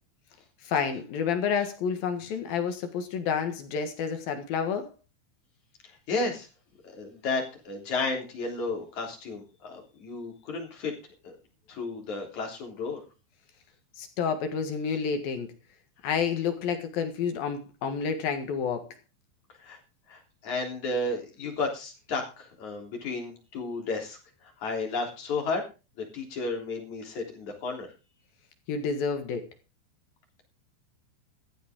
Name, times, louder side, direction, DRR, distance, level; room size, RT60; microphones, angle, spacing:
voice 1, 0.6-4.9 14.0-15.5 16.0-18.9 28.7-29.4, left 6 dB, 60° left, 2.9 m, -29 dB
voice 2, 5.8-6.5 6.8-10.9 11.2-11.3 11.7-13.0 19.6-19.8 20.1-25.6 26.0-27.9, left 3 dB, 40° left, 4.4 m, -33 dB
15.0 x 13.5 x 3.7 m
omnidirectional pair, 5.5 m